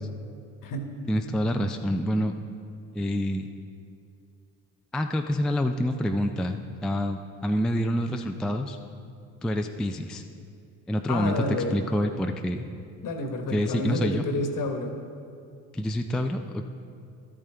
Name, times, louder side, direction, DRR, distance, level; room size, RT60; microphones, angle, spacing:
voice 1, 1.1-2.3 2.9-3.5 4.9-8.8 9.4-10.2 10.9-11.4 11.7-12.7 13.5-14.3 15.7-16.7, equal, ahead, 4 dB, 0.3 m, -27 dB
voice 2, 11.1-11.8 13.0-15.0, left 1 dB, 50° left, 6 dB, 1.3 m, -29 dB
12.0 x 8.6 x 3.4 m, 2.4 s
hypercardioid pair, 55°, 42 cm